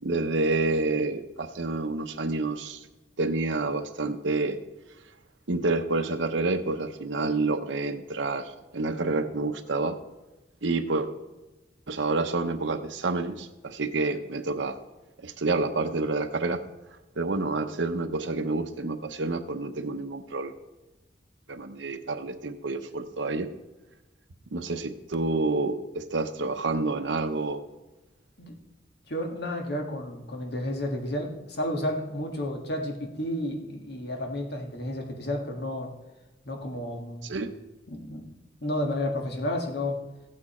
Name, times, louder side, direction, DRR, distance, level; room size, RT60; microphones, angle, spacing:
voice 1, 0.0-2.8 3.2-4.6 5.5-10.0 10.6-11.1 11.9-14.8 15.2-16.6 17.2-20.5 21.5-23.5 24.5-27.6 37.2-37.5, right 3 dB, 85° right, 6 dB, 0.8 m, -28 dB
voice 2, 29.1-35.9 36.4-37.2 37.9-38.3 38.6-40.0, left 1 dB, 65° left, 2 dB, 1.7 m, -31 dB
15.0 x 8.6 x 4.3 m, 1.1 s
head